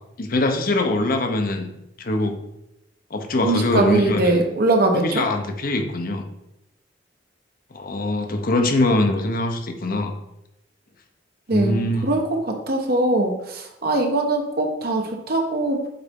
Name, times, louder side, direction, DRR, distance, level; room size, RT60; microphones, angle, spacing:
voice 1, 0.2-1.7 2.0-2.4 3.1-4.4 4.9-6.2 7.7-10.2 11.5-12.2, left 2 dB, 50° left, 5 dB, 0.8 m, -23 dB
voice 2, 3.4-5.2 11.5-15.9, right 2 dB, 60° right, 3 dB, 1.1 m, -21 dB
7.8 x 4.1 x 3.7 m, 0.87 s
head